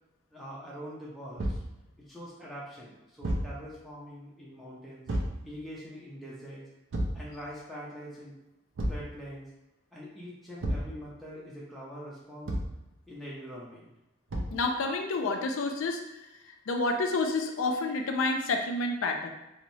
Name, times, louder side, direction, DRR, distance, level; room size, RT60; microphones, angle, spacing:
voice 1, 0.3-1.6 2.1-5.1 5.4-6.6 7.1-8.3 8.9-9.5 9.9-12.5 13.1-13.9, equal, ahead, -7 dB, 0.4 m, -43 dB
Thump thud, 1.4-1.7 3.2-3.6 5.1-5.4 6.9-7.3 8.8-9.1 10.6-11.0 12.5-12.8 14.3-14.6, right 1 dB, 65° right, 0.4 m, -31 dB
voice 2, 14.5-16.2 16.7-19.3, left 3 dB, 75° left, 4 dB, 0.4 m, -29 dB
2.9 x 2.0 x 2.6 m, 0.94 s
head